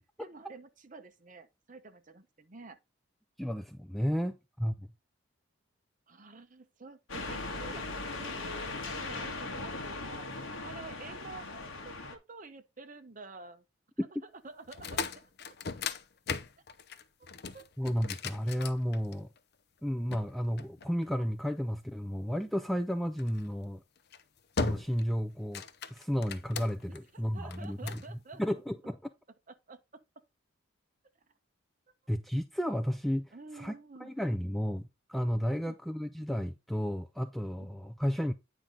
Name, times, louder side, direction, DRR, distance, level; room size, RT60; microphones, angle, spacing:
voice 1, 0.2-2.8 6.1-7.9 8.2-10.3 10.6-13.6 14.0-15.5 17.2-17.7 26.9-28.4 29.5-29.8 33.3-34.1 35.5-35.8, right 3 dB, 35° right, 0.8 m, -49 dB
voice 2, 3.4-4.9 14.0-14.1 17.8-19.3 19.8-23.8 24.6-25.6 25.9-28.0 28.4-29.0 32.1-33.7 34.0-38.3, equal, ahead, 0.3 m, -32 dB
sound 1, 7.1-12.2, left 3 dB, 70° left, 1.7 m, -39 dB
sound 2, 14.6-19.4 20.1-21.4 23.2-23.5 24.0-24.2 24.6-25.1 25.4-27.0 27.5-28.1, left 5 dB, 50° left, 0.6 m, -38 dB
9.0 x 5.1 x 3.8 m
head